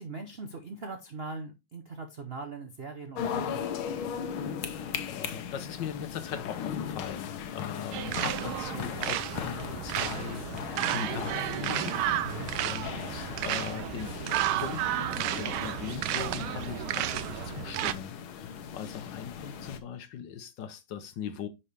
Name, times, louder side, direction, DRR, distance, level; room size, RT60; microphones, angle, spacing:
voice 1, 0.0-3.8 12.2-12.5, right 3 dB, 55° right, 0.6 m, -41 dB
sound 1, 3.1-19.8, left 8 dB, 85° left, 1.7 m, -38 dB
voice 2, 4.7-14.1 14.6-21.5, left 8 dB, 65° left, 1.4 m, -40 dB
sound 2, 7.9-17.9, right 13 dB, 90° right, 1.5 m, -32 dB
9.9 x 4.4 x 3.3 m
omnidirectional pair, 2.2 m